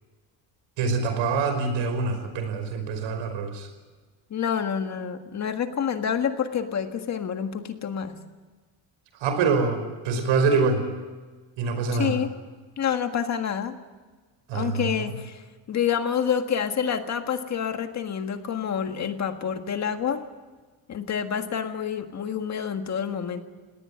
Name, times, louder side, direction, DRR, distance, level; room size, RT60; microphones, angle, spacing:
voice 1, 0.8-3.7 9.2-10.8 11.6-12.1 14.5-15.2, right 4 dB, 85° right, 8 dB, 5.3 m, -25 dB
voice 2, 4.3-8.2 11.9-12.3 12.8-13.8 14.5-15.4 15.7-20.2 20.9-23.4, left 8 dB, 35° left, 7 dB, 1.7 m, -28 dB
20.5 x 18.0 x 9.6 m, 1.3 s
cardioid pair, 155°, 46 cm